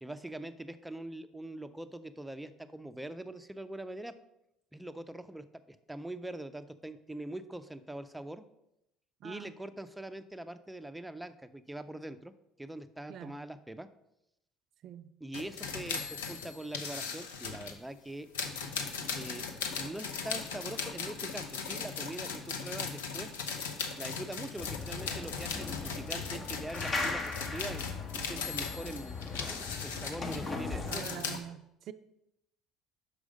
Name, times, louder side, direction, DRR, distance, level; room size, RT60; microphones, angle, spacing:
voice 1, 0.0-4.2 4.7-8.4 9.2-12.3 12.6-13.9 15.2-18.3 19.2-19.5 19.8-23.4 24.0-27.9 28.1-29.2 29.8-31.1, right 1 dB, 5° right, 0.5 m, -43 dB
voice 2, 9.2-9.5 13.1-13.4 14.8-15.1 30.7-31.9, right 9 dB, 55° right, 0.4 m, -45 dB
sound 1, 15.3-17.8 18.3-31.4, left 5 dB, 85° left, 0.7 m, -38 dB
sound 2, 24.6-31.0, left 3 dB, 40° left, 1.2 m, -38 dB
6.2 x 4.8 x 5.2 m
hypercardioid pair, 65°, 0 cm